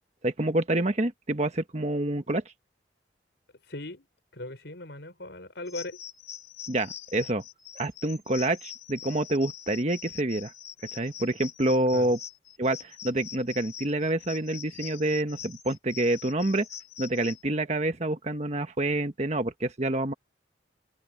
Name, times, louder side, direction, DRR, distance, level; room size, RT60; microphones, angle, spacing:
voice 1, 0.2-2.4 6.7-7.4 7.7-10.5 10.9-12.2 12.6-16.7 17.0-20.1, right 1 dB, 40° right, 1.3 m, -27 dB
voice 2, 3.6-4.1 4.3-6.0 11.9-12.1, left 2 dB, 70° left, 6.1 m, -39 dB
sound 1, 5.7-17.4, left 9 dB, 40° left, 4.2 m, -44 dB
open air
head